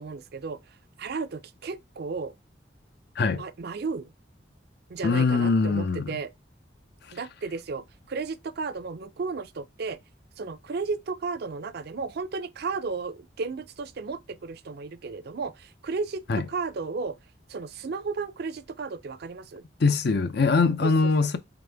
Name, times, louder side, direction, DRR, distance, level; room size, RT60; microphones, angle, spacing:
voice 1, 0.0-2.3 3.3-4.1 4.9-6.3 7.1-10.0 10.4-17.2 17.5-19.6 20.8-21.1, right 4 dB, 60° right, 0.5 m, -34 dB
voice 2, 5.0-6.2 16.3-16.4 19.8-21.4, left 4 dB, 60° left, 0.6 m, -22 dB
4.1 x 3.4 x 3.3 m
head